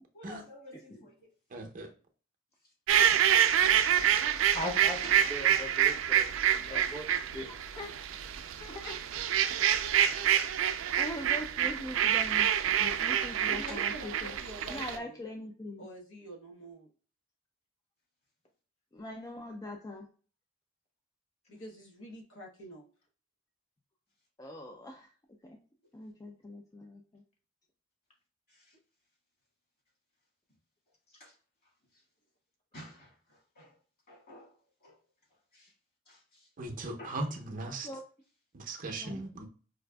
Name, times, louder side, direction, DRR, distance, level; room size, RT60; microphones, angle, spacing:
voice 1, 0.1-1.3 5.0-5.3 10.7-10.8 13.7-13.9 28.5-28.7 31.1-31.3 31.9-32.0 32.7-33.8 34.1-35.0 35.5-35.7 36.0-36.5 37.0-37.2, left 1 dB, 50° left, 1.7 m, -51 dB
voice 2, 1.5-1.9 36.6-37.9 38.5-39.5, right 2 dB, 45° right, 0.6 m, -38 dB
sound 1, 2.9-15.0, right 9 dB, 85° right, 0.3 m, -27 dB
voice 3, 4.5-5.0 5.3-7.5, left 1 dB, 35° left, 1.0 m, -39 dB
voice 4, 7.5-7.9 8.6-9.0 11.0-14.3 14.7-15.9 18.9-20.1 24.4-25.1 25.4-25.6 25.9-27.2 37.8-38.0 39.0-39.2, left 1 dB, 20° left, 0.3 m, -42 dB
voice 5, 13.4-15.2 15.8-16.9 21.5-22.8, right 1 dB, 80° left, 0.9 m, -46 dB
4.9 x 2.4 x 2.2 m
head